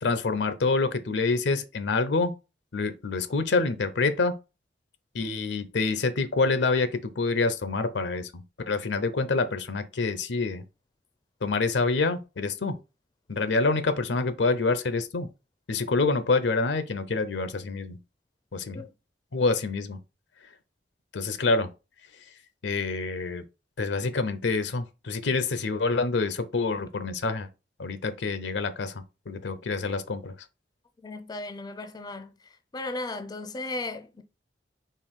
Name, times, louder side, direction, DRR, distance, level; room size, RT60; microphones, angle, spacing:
voice 1, 0.0-2.3 2.7-4.3 5.1-10.6 11.4-12.8 13.3-15.3 15.7-18.0 18.5-18.8 19.3-20.0 21.1-21.7 22.6-23.4 23.8-27.5 27.8-30.3, left 3 dB, 80° left, 0.6 m, -27 dB
voice 2, 31.0-32.3 32.7-34.2, left 2 dB, 25° left, 0.4 m, -35 dB
4.5 x 3.0 x 3.6 m
head